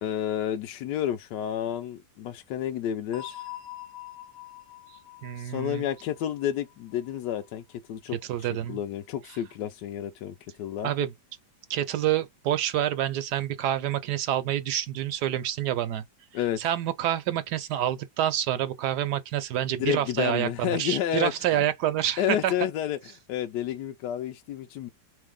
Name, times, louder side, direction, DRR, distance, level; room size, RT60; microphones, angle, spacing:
voice 1, 0.0-3.4 5.4-7.6 7.9-10.9 16.3-16.6 19.7-21.6 22.2-23.0 23.3-24.9, left 10 dB, 75° left, 1.1 m, -30 dB
sound 1, 3.1-7.8, left 13 dB, 20° right, 0.6 m, -45 dB
voice 2, 5.2-5.8 8.3-8.8 10.8-11.1 11.7-16.0 16.6-22.5, right 11 dB, 70° right, 1.1 m, -27 dB
4.2 x 3.2 x 3.5 m
omnidirectional pair, 1.9 m